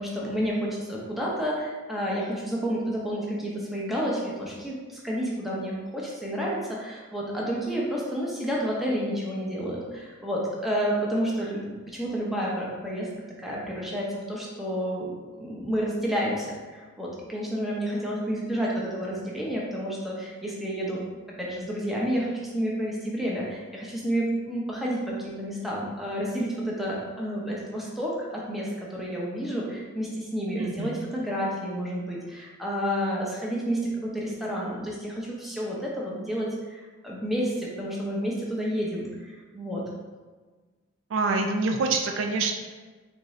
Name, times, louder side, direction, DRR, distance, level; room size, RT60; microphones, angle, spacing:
voice 1, 0.0-13.1 13.4-21.0 21.4-39.8, equal, ahead, -5 dB, 0.6 m, -30 dB
voice 2, 30.6-31.1 41.1-42.5, right 3 dB, 65° right, 4 dB, 0.3 m, -26 dB
3.6 x 2.6 x 3.1 m, 1.3 s
head